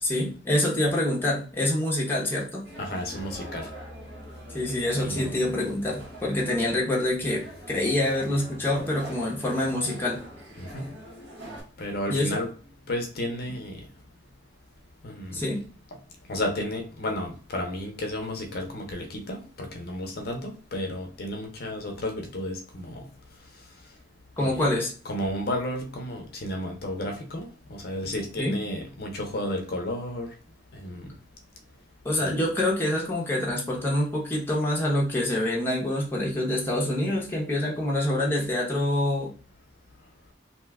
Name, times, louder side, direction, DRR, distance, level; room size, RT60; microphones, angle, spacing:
voice 1, 0.0-2.6 4.5-10.2 12.1-12.4 15.3-15.6 24.4-24.9 28.4-28.6 32.0-39.3, left 1 dB, 10° left, -3 dB, 0.7 m, -26 dB
sound 1, 2.6-11.6, equal, 70° right, 1.1 m, -43 dB
voice 2, 2.8-3.7 4.9-5.5 10.6-10.9 11.8-12.5 12.9-13.8 15.0-15.3 16.3-23.0 24.4-24.7 25.0-30.3 30.7-31.1 32.2-32.4, left 1 dB, 55° left, 3 dB, 0.6 m, -32 dB
2.7 x 2.2 x 3.4 m, 0.39 s
head